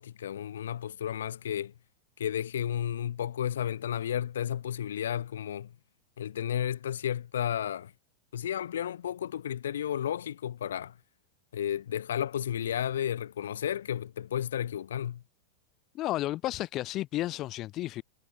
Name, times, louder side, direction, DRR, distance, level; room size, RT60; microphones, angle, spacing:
voice 1, 0.0-1.7 2.2-5.7 6.2-7.9 8.3-10.9 11.5-15.2, left 10 dB, 65° left, 5.1 m, -32 dB
voice 2, 15.9-18.0, left 15 dB, 35° left, 1.3 m, -32 dB
figure-of-eight pair, 90°, 0 cm